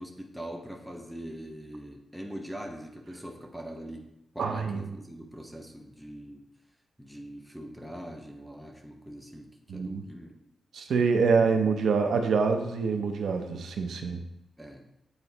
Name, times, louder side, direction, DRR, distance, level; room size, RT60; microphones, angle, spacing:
voice 1, 0.0-4.0 4.3-6.4 7.0-10.4 14.6-14.9, equal, 5° right, 2 dB, 0.7 m, -42 dB
voice 2, 4.4-4.8 9.7-10.0 10.7-14.2, right 5 dB, 75° right, 5 dB, 0.6 m, -26 dB
8.1 x 2.9 x 4.0 m, 0.87 s
wide cardioid pair, 140°, 0 cm